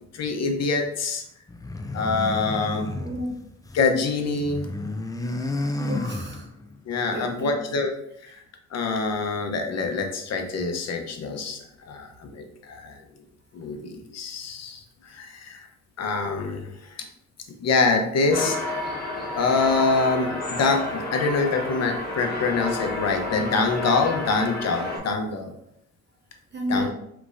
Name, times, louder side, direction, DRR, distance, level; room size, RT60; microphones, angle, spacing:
voice 1, 0.1-1.2 1.9-2.9 3.7-4.7 6.9-7.9 8.7-11.6 11.9-13.0 13.5-15.7 16.0-17.1 17.6-18.8 19.4-25.5 26.7-26.9, left 4 dB, 60° left, 4 dB, 0.9 m, -25 dB
sound 1, 1.5-3.9 4.2-6.8, left 2 dB, 10° left, 0.4 m, -31 dB
voice 2, 3.0-3.4 5.8-6.5 7.1-7.6 26.5-26.9, equal, 35° right, 0 dB, 0.9 m, -31 dB
sound 2, 18.3-25.0, left 2 dB, 30° left, 1.4 m, -31 dB
4.9 x 3.4 x 2.6 m, 0.76 s
cardioid pair, 90°, 30 cm